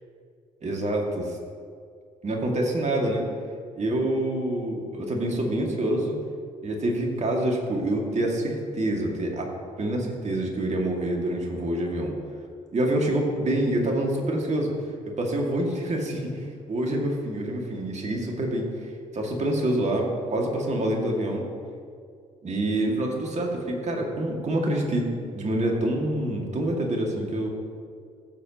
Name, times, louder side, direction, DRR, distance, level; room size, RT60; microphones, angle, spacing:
voice 1, 0.6-1.4 2.2-3.3 3.7-6.2 6.6-9.5 9.8-12.1 12.7-14.7 15.1-21.5 22.4-25.1 25.3-27.5, right 1 dB, 40° right, 0 dB, 2.2 m, -26 dB
14.5 x 7.0 x 3.0 m, 2.2 s
hypercardioid pair, 50°, 17 cm